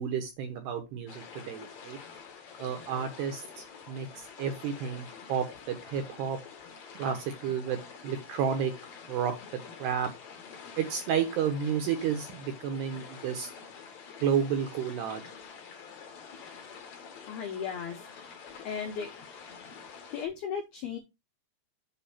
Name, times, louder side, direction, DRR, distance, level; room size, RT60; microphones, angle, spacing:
voice 1, 0.0-2.0 2.6-6.4 6.9-8.7 9.1-10.1 10.8-13.5 14.2-15.2, right 7 dB, 75° right, 6 dB, 2.5 m, -31 dB
sound 1, 1.1-20.3, left 6 dB, 60° left, 1.9 m, -47 dB
voice 2, 17.3-18.4 18.6-19.1 20.1-21.0, left 7 dB, 85° left, 4 dB, 2.2 m, -36 dB
8.0 x 5.9 x 4.3 m, 0.23 s
omnidirectional pair, 6.0 m